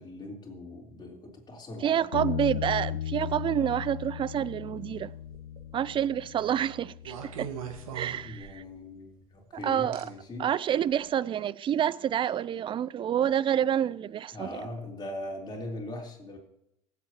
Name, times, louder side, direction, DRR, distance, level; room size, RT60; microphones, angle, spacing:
voice 1, 0.0-2.0 8.2-10.5 14.3-16.4, left 1 dB, 25° left, 3.8 m, -40 dB
voice 2, 1.8-5.1 5.7-7.5 7.9-8.6 9.5-10.1 10.4-14.6, right 10 dB, 30° right, 0.4 m, -28 dB
Bass guitar, 2.1-8.4, left 10 dB, 85° left, 0.5 m, -37 dB
sound 1, 5.2-5.7 7.0-8.8 9.9-10.0 10.9-11.1, right 8 dB, 75° right, 1.6 m, -40 dB
24.0 x 8.2 x 3.0 m
hypercardioid pair, 80°, 18 cm